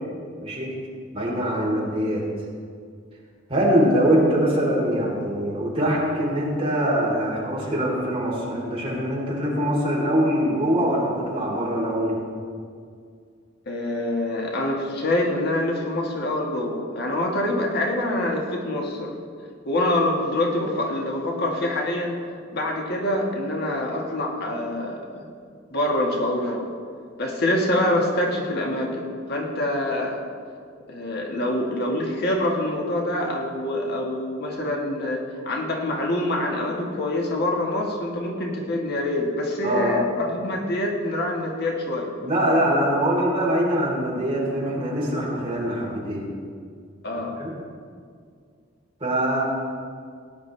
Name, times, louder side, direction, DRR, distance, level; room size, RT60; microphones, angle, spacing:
voice 1, 0.4-0.7 1.1-2.2 3.5-12.2 39.6-40.0 42.2-46.2 47.4-47.5 49.0-49.4, equal, 30° right, -5 dB, 3.5 m, -23 dB
voice 2, 13.6-19.1 19.6-22.2 22.5-25.2 25.7-26.7 27.2-30.2 30.9-42.1 47.0-47.4, left 1 dB, 55° left, -1 dB, 1.6 m, -25 dB
18.0 x 10.0 x 3.3 m, 2.2 s
head